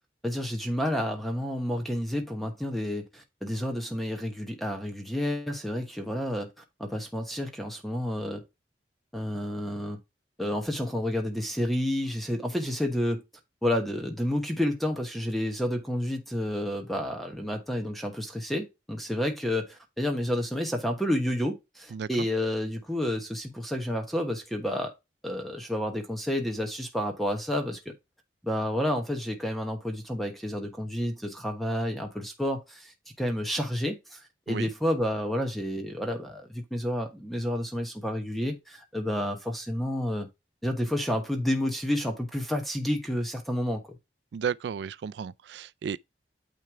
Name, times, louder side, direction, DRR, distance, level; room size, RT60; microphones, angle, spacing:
voice 1, 0.2-6.5 6.8-8.4 9.1-10.0 10.4-13.2 13.6-24.9 25.2-27.9 28.4-32.9 33.2-34.2 34.5-40.3 40.6-43.8, left 1 dB, ahead, 1.2 m, -30 dB
voice 2, 44.3-46.0, right 7 dB, 70° right, 0.3 m, -33 dB
9.2 x 3.3 x 4.6 m
head